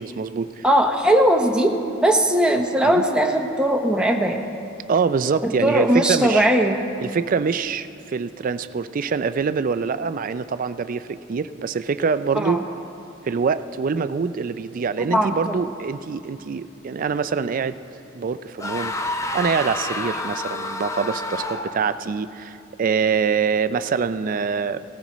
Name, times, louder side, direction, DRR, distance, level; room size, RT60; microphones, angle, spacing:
voice 1, 0.0-0.6 2.8-3.0 4.9-6.5 7.0-12.6 13.2-17.8 18.1-18.9 19.3-24.8, right 5 dB, 45° right, 13 dB, 0.4 m, -24 dB
voice 2, 0.6-1.8 2.0-4.4 5.4-6.8 12.4-12.6 15.0-15.6, right 1 dB, 5° right, 1 dB, 0.8 m, -19 dB
sound 1, 18.6-21.9, left 2 dB, 15° left, 0.5 m, -29 dB
18.0 x 14.5 x 3.1 m, 2.6 s
head